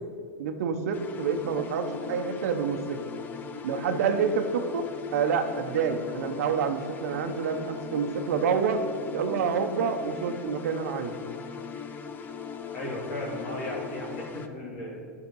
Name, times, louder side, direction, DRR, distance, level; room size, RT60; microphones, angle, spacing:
voice 1, 0.4-3.0 3.6-8.9 9.1-11.1, right 6 dB, 75° right, 8 dB, 0.9 m, -28 dB
sound 1, 0.9-14.5, left 6 dB, 20° left, 0.6 m, -39 dB
voice 2, 12.7-15.0, left 1 dB, 55° left, -5 dB, 2.2 m, -36 dB
10.5 x 5.8 x 5.4 m, 2.2 s
supercardioid pair, 145°, 8 cm